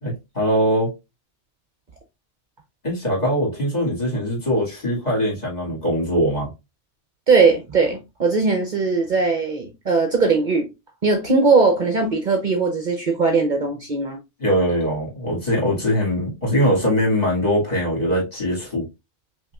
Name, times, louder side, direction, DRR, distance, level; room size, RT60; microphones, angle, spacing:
voice 1, 0.0-0.9 2.8-6.5 14.4-18.8, equal, 35° left, 2.2 m, -22 dB
voice 2, 7.3-10.7 11.0-14.2, right 4 dB, 50° right, 0.8 m, -19 dB
5.4 x 2.9 x 2.3 m
omnidirectional pair, 1.2 m